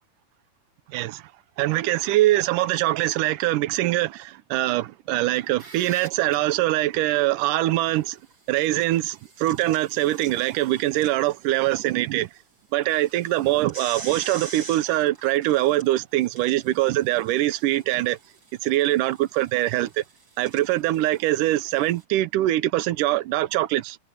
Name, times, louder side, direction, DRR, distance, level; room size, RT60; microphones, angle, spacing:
voice 1, 0.9-1.3 1.6-8.2 8.5-12.3 12.7-18.2 18.6-20.0 20.4-24.0, right 16 dB, 80° right, 2.3 m, -23 dB
sound 1, 5.4-6.4 8.3-11.9 12.3-12.4 12.8-22.0, right 4 dB, 30° right, 2.8 m, -44 dB
omnidirectional pair, 3.8 m